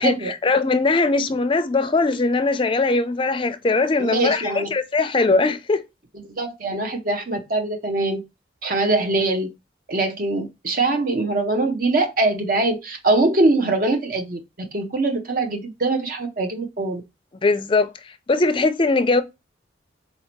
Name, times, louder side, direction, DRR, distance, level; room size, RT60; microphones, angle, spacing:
voice 1, 0.0-5.8 17.4-17.9 18.3-19.2, left 3 dB, 25° left, 0.4 m, -20 dB
voice 2, 4.0-4.7 6.2-8.2 8.6-9.5 9.9-17.0, right 2 dB, 50° right, 0.7 m, -22 dB
4.1 x 2.7 x 4.4 m
head